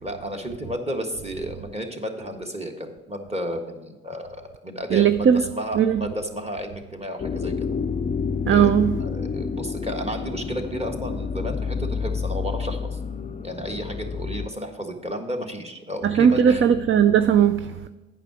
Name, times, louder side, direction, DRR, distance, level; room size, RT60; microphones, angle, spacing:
voice 1, 0.0-7.5 8.5-13.0 13.4-16.7, equal, 15° right, 1.6 m, -32 dB
voice 2, 4.9-5.4 5.7-6.0 8.5-9.0 16.0-17.7, right 8 dB, 35° right, 0.4 m, -18 dB
sound 1, 7.2-14.5, left 5 dB, 20° left, 0.5 m, -29 dB
8.9 x 5.9 x 6.1 m
hypercardioid pair, 50°, 36 cm